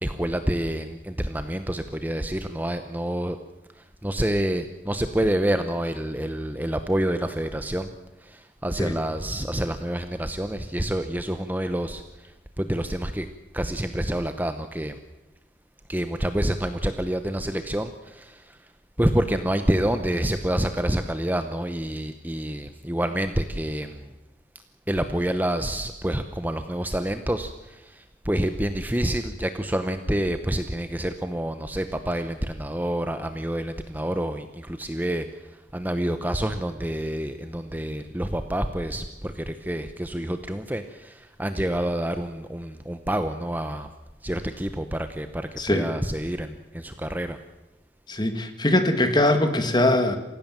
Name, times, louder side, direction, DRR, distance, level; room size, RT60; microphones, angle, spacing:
voice 1, 0.0-3.4 4.0-7.9 8.3-12.0 12.6-13.3 13.5-15.0 15.9-18.4 19.0-24.0 24.9-27.5 28.0-35.3 35.7-41.1 41.4-43.9 44.2-47.4, right 1 dB, 10° right, 8 dB, 0.8 m, -27 dB
voice 2, 45.6-45.9 48.1-50.2, left 1 dB, 25° left, 8 dB, 1.9 m, -22 dB
27.5 x 16.0 x 7.5 m, 1.0 s
head